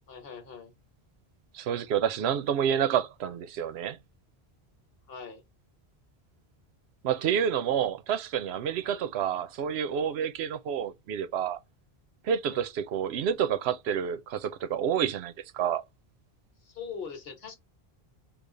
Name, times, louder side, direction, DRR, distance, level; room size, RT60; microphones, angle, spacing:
voice 1, 0.1-0.7 5.1-5.4 8.8-9.0 12.4-12.6 16.6-17.5, left 6 dB, 70° left, 1.2 m, -42 dB
voice 2, 1.5-4.0 7.0-11.6 12.2-15.8, right 8 dB, 90° right, 0.8 m, -29 dB
3.3 x 2.4 x 3.7 m
omnidirectional pair, 1.0 m